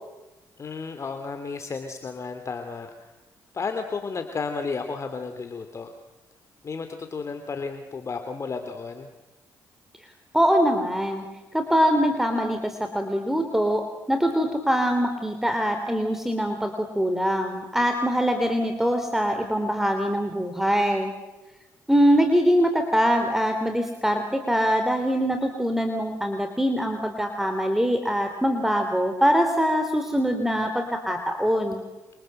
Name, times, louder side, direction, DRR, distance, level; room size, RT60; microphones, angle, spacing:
voice 1, 0.6-3.1 3.5-5.9 6.6-9.1, left 4 dB, 40° left, 6 dB, 2.9 m, -33 dB
voice 2, 10.3-11.2 11.5-21.1 21.9-31.8, equal, 5° right, 6 dB, 3.5 m, -23 dB
28.0 x 26.5 x 7.8 m, 1.1 s
cardioid pair, 75°, 7 cm